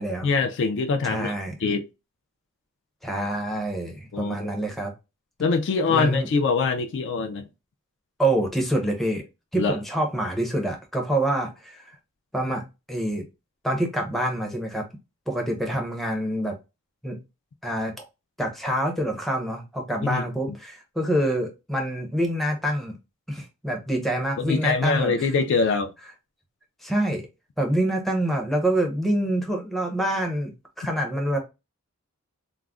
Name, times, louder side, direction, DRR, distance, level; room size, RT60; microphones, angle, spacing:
voice 1, 0.2-1.3 1.6-1.9 4.1-4.5 5.4-7.5 9.6-9.8 20.0-20.2 24.4-25.9, left 4 dB, 55° left, 0.3 m, -23 dB
voice 2, 1.1-1.6 3.0-4.9 5.9-6.3 8.2-9.2 9.5-11.9 12.3-13.3 13.6-14.9 15.3-16.6 17.0-17.2 17.6-17.9 18.4-23.0 23.3-25.3 26.8-27.2 27.6-30.5 30.8-31.4, right 1 dB, ahead, 0.5 m, -26 dB
2.3 x 2.0 x 3.4 m
head